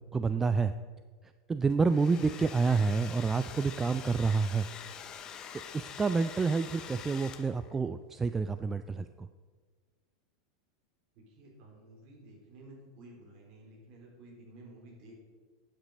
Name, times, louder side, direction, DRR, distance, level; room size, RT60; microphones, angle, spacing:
voice 1, 0.1-0.7 1.5-4.7 5.7-9.3, right 4 dB, 15° right, 11 dB, 0.3 m, -28 dB
Domestic sounds home sounds, 1.7-7.8, left 8 dB, 30° left, 0.7 m, -45 dB
voice 2, 11.1-15.2, right 1 dB, 45° right, -1 dB, 3.1 m, -53 dB
8.8 x 8.0 x 5.1 m, 1.5 s
figure-of-eight pair, 85°, 2 cm